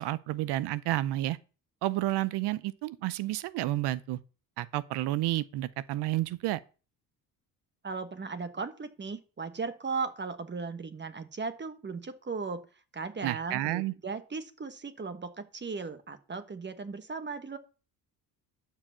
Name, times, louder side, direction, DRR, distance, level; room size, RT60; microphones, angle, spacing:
voice 1, 0.0-1.4 1.8-4.2 4.6-6.6 13.2-13.9, right 15 dB, 85° right, 0.7 m, -30 dB
voice 2, 7.8-12.7 12.9-17.6, right 4 dB, 25° right, 1.3 m, -37 dB
11.5 x 4.8 x 7.4 m
cardioid pair, 90°, 40 cm